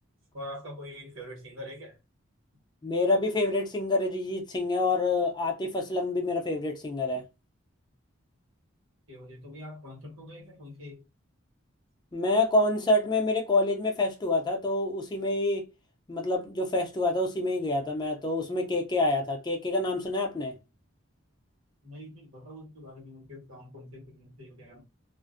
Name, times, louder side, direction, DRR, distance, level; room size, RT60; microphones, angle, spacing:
voice 1, 0.3-2.0 9.1-11.0 21.8-24.8, left 1 dB, 75° right, 1.2 m, -44 dB
voice 2, 2.8-7.3 12.1-15.6 16.1-20.5, left 2 dB, 20° left, 0.4 m, -27 dB
2.5 x 2.0 x 2.4 m
head